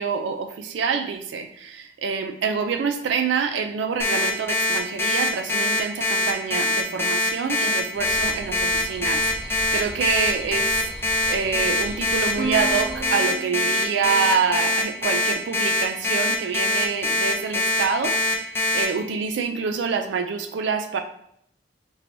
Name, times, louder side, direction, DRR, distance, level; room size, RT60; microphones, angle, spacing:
voice 1, 0.0-21.0, right 6 dB, 80° right, 7 dB, 0.3 m, -26 dB
Alarm, 4.0-18.8, left 2 dB, 10° left, 0.5 m, -23 dB
sound 1, 7.9-13.1, equal, 30° right, 0.8 m, -39 dB
Plucked string instrument, 12.4-15.1, right 4 dB, 45° right, 1.2 m, -34 dB
4.4 x 3.0 x 2.6 m, 0.70 s
head